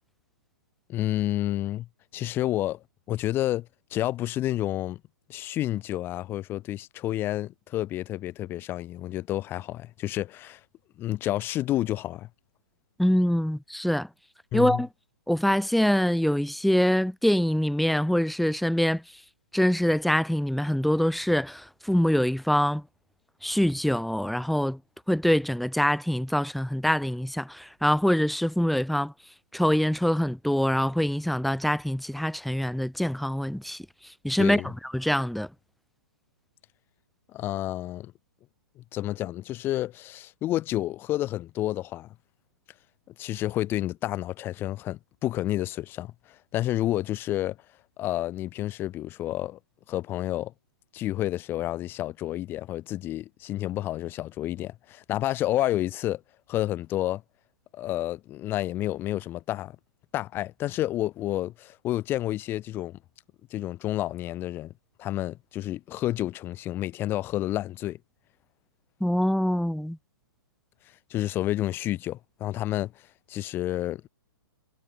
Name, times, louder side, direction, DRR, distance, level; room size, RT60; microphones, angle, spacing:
voice 1, 0.9-1.9 2.1-5.0 5.3-10.6 11.0-12.3 14.5-14.8 34.4-34.7 37.3-38.1 38.8-42.1 43.2-46.1 46.5-47.6 48.0-49.6 49.9-50.5 50.9-56.2 56.5-57.2 57.7-59.8 60.1-63.0 63.5-64.7 65.0-68.0 71.1-72.9 73.3-74.1, left 14 dB, 15° left, 7.1 m, -30 dB
voice 2, 13.0-14.1 14.5-14.9 15.3-19.0 19.5-22.8 23.4-24.8 25.1-29.1 29.5-33.8 34.2-35.5 69.0-70.0, equal, ahead, 4.3 m, -24 dB
hypercardioid pair, 170°, 13 cm